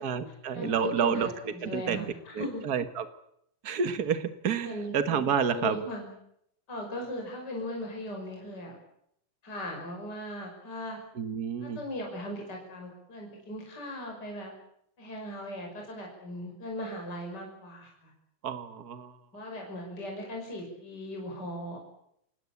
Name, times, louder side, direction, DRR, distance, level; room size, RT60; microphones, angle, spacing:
voice 1, 0.0-2.1 2.3-3.0 3.6-5.8 11.2-11.8 18.4-19.1, right 7 dB, 55° right, 10 dB, 1.0 m, -29 dB
voice 2, 0.5-2.6 4.6-5.0 5.5-6.1 6.7-8.7 9.4-11.0 11.6-14.5 15.0-18.1 19.3-21.8, left 1 dB, 30° left, 1 dB, 6.3 m, -38 dB
28.5 x 18.0 x 8.6 m, 0.73 s
omnidirectional pair, 3.9 m